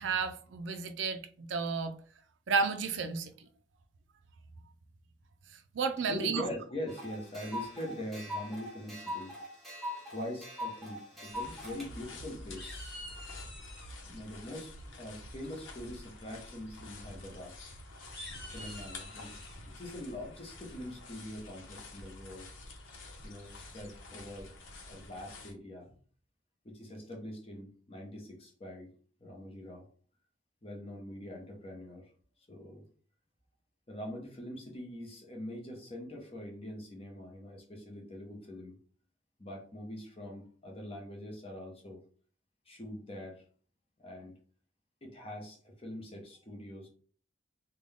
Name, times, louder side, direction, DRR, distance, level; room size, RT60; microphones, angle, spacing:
voice 1, 0.0-1.9 2.5-3.3 5.7-6.5, right 5 dB, 75° right, 0.4 m, -32 dB
voice 2, 6.1-9.4 10.1-12.9 14.0-17.5 18.5-19.3 19.6-22.5 23.2-24.6 24.8-25.9 26.6-28.9 29.2-29.9 30.6-32.1 32.5-32.8 33.9-38.8 39.4-42.0 42.7-43.4 44.0-44.3 45.0-46.9, left 1 dB, 30° left, 0.9 m, -43 dB
sound 1, 6.9-11.9, left 1 dB, ahead, 1.0 m, -42 dB
sound 2, 11.3-25.5, left 2 dB, 85° left, 0.9 m, -48 dB
sound 3, 11.7-12.2 12.6-13.9 15.4-15.8 16.2-16.4 16.7-16.8 17.2-17.4 18.0-19.6, left 1 dB, 55° left, 1.2 m, -48 dB
3.7 x 2.3 x 3.5 m
head